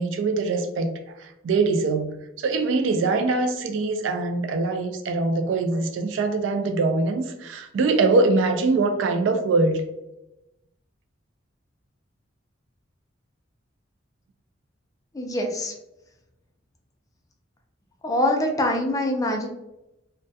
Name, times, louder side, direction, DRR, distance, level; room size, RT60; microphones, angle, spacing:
voice 1, 0.0-9.8, right 3 dB, 70° right, 6 dB, 0.3 m, -23 dB
voice 2, 15.1-15.7 18.0-19.5, left 1 dB, 20° left, 2 dB, 0.4 m, -24 dB
2.2 x 2.2 x 2.6 m, 0.91 s
head